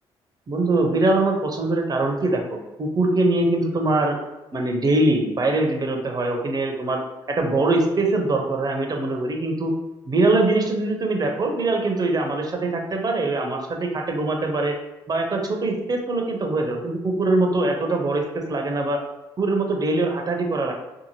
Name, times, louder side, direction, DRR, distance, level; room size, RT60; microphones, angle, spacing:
voice 1, 0.5-4.2 4.5-7.0 7.3-9.7 10.0-14.7 15.1-19.0 19.4-20.7, right 2 dB, 35° right, 2 dB, 0.6 m, -22 dB
2.7 x 2.4 x 2.8 m, 0.98 s
supercardioid pair, 70°, 11 cm